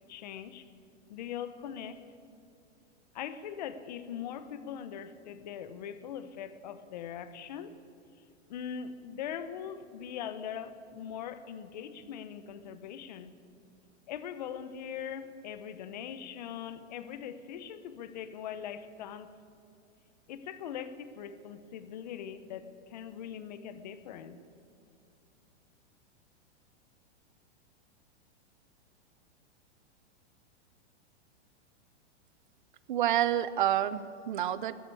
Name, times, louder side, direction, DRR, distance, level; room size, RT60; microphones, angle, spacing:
voice 1, 0.1-0.6 1.1-2.0 3.1-7.7 8.5-13.3 14.1-19.3 20.3-24.4, left 8 dB, 40° left, 12 dB, 0.8 m, -41 dB
voice 2, 32.9-34.7, right 11 dB, 45° right, 16 dB, 0.6 m, -28 dB
14.5 x 9.9 x 9.8 m, 2.5 s
supercardioid pair, 175°, 34 cm